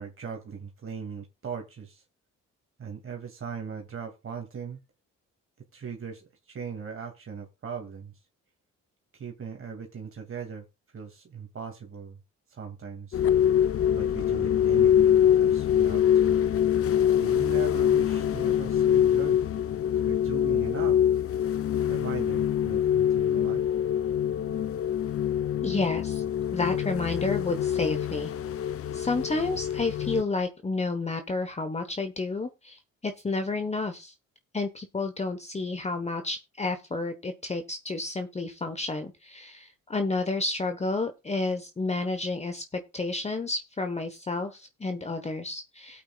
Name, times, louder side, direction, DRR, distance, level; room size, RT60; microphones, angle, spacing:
voice 1, 0.0-2.0 2.8-4.8 5.7-8.1 9.1-10.7 10.9-12.2 12.5-13.2 13.9-16.3 17.2-19.4 20.1-21.0 21.9-23.6, right 6 dB, 45° right, 2.4 m, -39 dB
sound 1, 13.1-30.2, left 9 dB, 50° left, 0.7 m, -24 dB
voice 2, 25.6-26.2 26.5-28.3 28.9-34.1 34.5-46.0, left 3 dB, 20° left, 1.2 m, -31 dB
17.5 x 8.6 x 2.4 m
cardioid pair, 90°, 30 cm